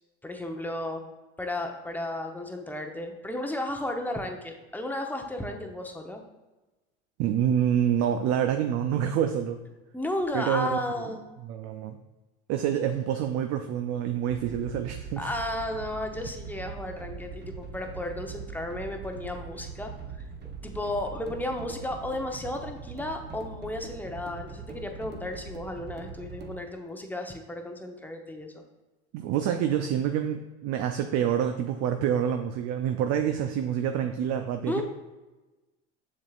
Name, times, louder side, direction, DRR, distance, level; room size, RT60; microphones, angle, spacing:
voice 1, 0.2-1.0 1.4-6.2 9.9-11.2 15.2-20.2 20.6-28.6 34.7-34.8, left 1 dB, 5° left, 3 dB, 0.8 m, -34 dB
voice 2, 7.2-9.6 10.3-10.9 11.5-12.0 12.5-15.3 29.1-34.8, right 9 dB, 50° right, 6 dB, 0.5 m, -27 dB
sound 1, 14.3-26.6, right 5 dB, 30° right, 0.9 m, -42 dB
7.3 x 6.4 x 2.4 m, 1.1 s
supercardioid pair, 95°, 32 cm